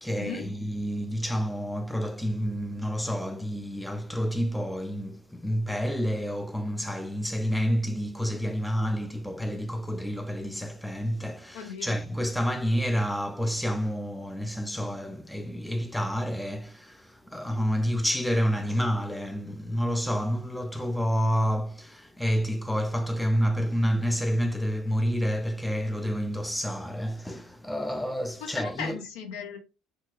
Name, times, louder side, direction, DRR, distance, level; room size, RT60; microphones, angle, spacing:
voice 1, 0.0-29.0, equal, 5° left, 0.3 m, -29 dB
voice 2, 11.5-11.9 28.4-29.6, left 7 dB, 70° left, 0.7 m, -37 dB
2.8 x 2.8 x 2.4 m
hypercardioid pair, 65°, 0 cm